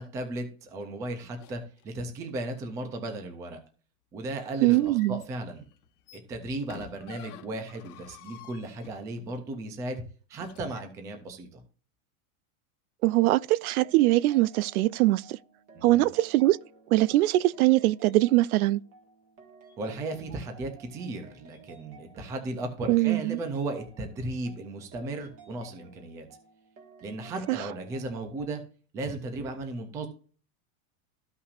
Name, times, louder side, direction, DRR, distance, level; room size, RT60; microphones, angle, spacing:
voice 1, 0.0-3.6 4.1-5.7 6.1-10.0 10.3-11.6 15.7-16.0 19.8-26.3 27.0-28.6 28.9-30.1, right 2 dB, 10° right, 0.3 m, -35 dB
sound 1, 1.3-1.9 4.6-9.4 10.4-10.8, left 11 dB, 80° left, 1.4 m, -50 dB
voice 2, 4.6-5.2 13.0-15.4 15.8-16.6 16.9-18.8 22.9-23.4 27.5-27.6, right 17 dB, 75° right, 0.5 m, -22 dB
sound 2, 13.8-28.6, right 4 dB, 30° right, 1.7 m, -55 dB
14.0 x 5.7 x 2.4 m
supercardioid pair, 165°, 44 cm